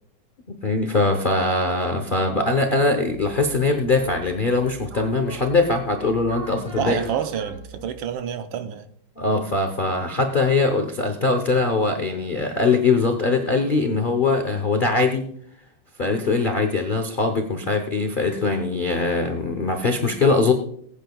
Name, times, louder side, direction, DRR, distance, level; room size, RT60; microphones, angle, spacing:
voice 1, 0.5-7.0 9.2-15.3 16.0-20.5, left 3 dB, 70° left, 0.4 m, -22 dB
sound 1, 3.1-8.2, right 2 dB, 30° right, 3.1 m, -41 dB
voice 2, 6.8-8.9, right 8 dB, 70° right, 1.5 m, -28 dB
20.5 x 8.9 x 2.3 m
omnidirectional pair, 2.4 m